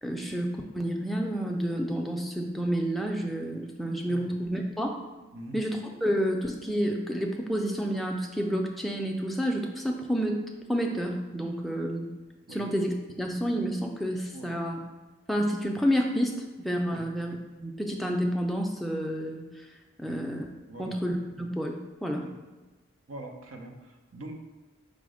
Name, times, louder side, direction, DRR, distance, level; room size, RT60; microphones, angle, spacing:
voice 1, 0.0-5.0 5.5-10.4 10.7-12.1 12.5-14.8 15.3-19.4 20.0-20.5 20.8-22.3, equal, ahead, 1 dB, 0.3 m, -29 dB
voice 2, 23.1-24.3, right 1 dB, 90° right, 2 dB, 0.7 m, -43 dB
5.0 x 2.1 x 4.8 m, 1.2 s
head